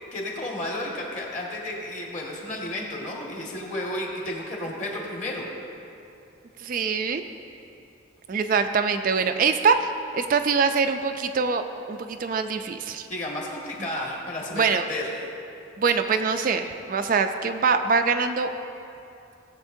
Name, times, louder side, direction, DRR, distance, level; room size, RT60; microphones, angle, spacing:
voice 1, 0.1-5.5 13.1-15.1, left 1 dB, 40° left, -3 dB, 1.7 m, -32 dB
voice 2, 6.6-7.2 8.3-9.9 10.1-11.6 11.9-13.1 14.5-14.8 15.8-18.5, right 5 dB, 45° right, 7 dB, 0.3 m, -23 dB
17.5 x 7.5 x 2.7 m, 2.7 s
head